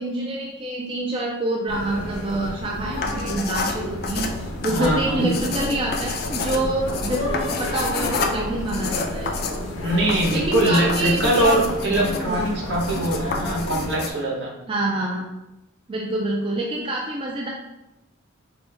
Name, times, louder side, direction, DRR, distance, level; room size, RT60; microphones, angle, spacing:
voice 1, 0.0-4.3 4.6-9.6 10.3-11.7 12.3-12.5 14.7-15.2 15.9-17.5, right 1 dB, 25° right, -1 dB, 0.3 m, -26 dB
sound 1, 1.7-13.9, left 1 dB, 90° left, 0.7 m, -31 dB
sound 2, 2.9-14.1, left 5 dB, 50° left, 0.3 m, -31 dB
voice 2, 4.7-5.3 9.8-14.5, right 1 dB, 65° right, -2 dB, 0.9 m, -22 dB
4.2 x 2.2 x 3.3 m, 0.96 s
head